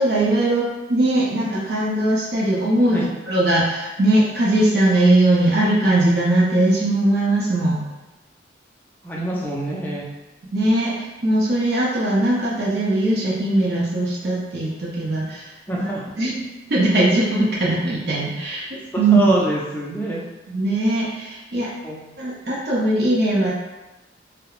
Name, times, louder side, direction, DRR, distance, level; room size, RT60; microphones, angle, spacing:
voice 1, 0.0-7.9 10.5-15.5 15.7-15.9 16.2-16.4 16.7-19.4 20.5-21.7 22.2-23.5, right 1 dB, 60° right, -6 dB, 0.5 m, -20 dB
voice 2, 9.0-10.0 15.7-16.0 19.1-20.2 21.8-22.0, equal, 10° left, -5 dB, 0.4 m, -25 dB
2.3 x 2.0 x 2.9 m, 1.1 s
head